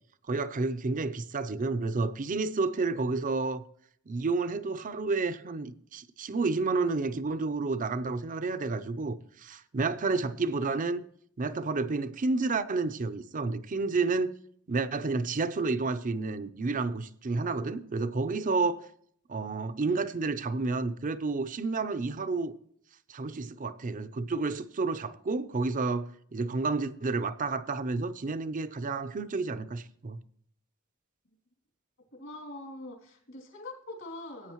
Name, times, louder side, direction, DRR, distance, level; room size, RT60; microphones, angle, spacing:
voice 1, 0.3-3.6 4.1-11.0 11.4-14.3 14.7-18.8 19.3-22.5 23.1-30.2, right 3 dB, 40° right, 0.6 m, -30 dB
voice 2, 32.1-34.5, left 2 dB, 65° left, 2.8 m, -43 dB
15.5 x 8.9 x 3.0 m
head